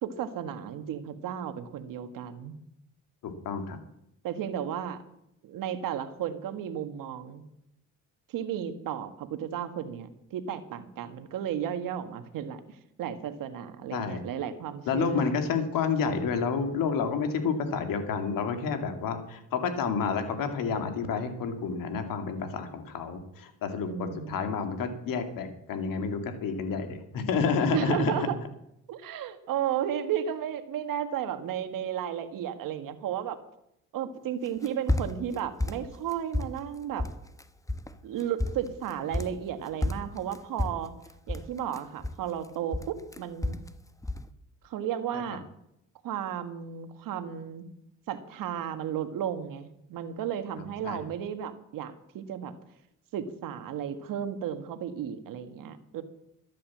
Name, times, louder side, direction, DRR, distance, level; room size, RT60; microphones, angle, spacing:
voice 1, 0.0-2.5 4.2-5.0 5.4-7.4 8.3-12.6 13.0-15.3 23.8-24.4 27.7-28.3 28.9-33.4 33.9-37.0 38.0-40.9 41.3-43.6 44.6-45.4 46.0-47.7 48.1-52.5 53.1-56.0, right 9 dB, 70° right, 10 dB, 1.7 m, -34 dB
voice 2, 3.2-3.8 13.9-14.2 14.9-28.3 45.1-45.2 50.8-51.0, left 5 dB, 75° left, 7 dB, 2.6 m, -29 dB
sound 1, 34.5-35.3 35.6-36.6 37.0-37.4 37.7-37.9 38.2-39.5 39.8-42.4 42.7-43.7 44.0-44.3, left 1 dB, 10° left, 1.1 m, -31 dB
13.0 x 9.9 x 7.5 m, 0.79 s
supercardioid pair, 70°, 34 cm